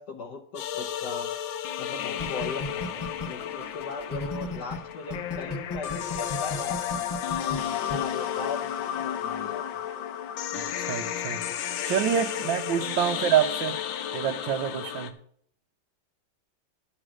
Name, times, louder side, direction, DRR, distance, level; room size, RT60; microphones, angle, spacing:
voice 1, 0.0-1.3 1.8-7.1 7.7-9.8, left 4 dB, 65° left, 3 dB, 1.4 m, -39 dB
sound 1, 0.6-15.1, left 10 dB, 90° left, 1.6 m, -32 dB
sound 2, 2.2-4.8 5.1-8.0, left 3 dB, 25° left, 0.5 m, -34 dB
voice 2, 10.5-11.4 11.9-13.8 14.1-15.2, right 10 dB, 85° right, 5 dB, 1.3 m, -27 dB
9.6 x 6.2 x 6.3 m, 0.65 s
omnidirectional pair, 2.0 m